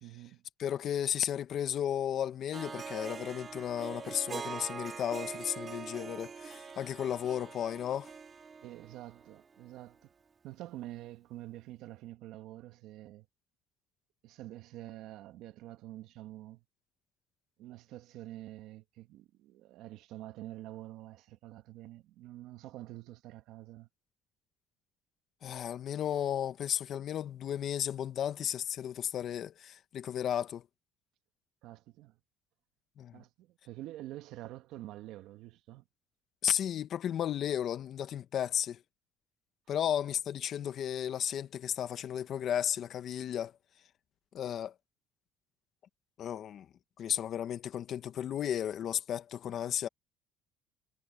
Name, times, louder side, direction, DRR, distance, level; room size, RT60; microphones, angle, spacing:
voice 1, 0.0-0.4 8.6-10.1 10.4-13.3 14.2-16.6 17.6-23.9 31.6-32.2 33.1-35.8, right 15 dB, 70° right, 1.6 m, -47 dB
voice 2, 0.6-8.1 25.4-30.6 33.0-33.2 36.4-38.8 39.7-43.5 44.3-44.7 46.2-46.7 47.0-49.9, left 10 dB, 50° left, 1.2 m, -34 dB
Harp, 2.5-9.7, right 5 dB, 30° right, 2.2 m, -43 dB
cardioid pair, 125°, 0 cm